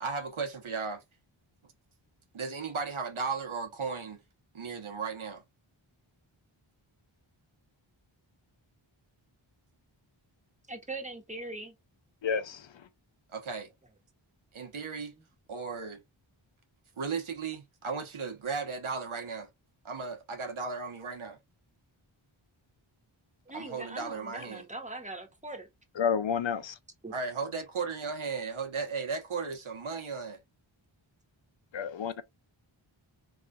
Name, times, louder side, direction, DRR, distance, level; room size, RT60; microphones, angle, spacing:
voice 1, 0.0-1.0 2.3-4.2 4.5-5.4 13.3-13.7 14.5-15.1 15.5-16.0 17.0-19.5 19.8-21.4 23.5-24.6 27.1-30.4, right 5 dB, 80° right, 1.0 m, -35 dB
voice 2, 10.7-11.7 23.5-25.7 27.0-27.1, right 2 dB, 15° right, 1.1 m, -41 dB
voice 3, 12.2-12.7 25.9-26.7 31.7-32.2, left 7 dB, 65° left, 0.6 m, -30 dB
3.8 x 3.0 x 2.3 m
wide cardioid pair, 60°, 49 cm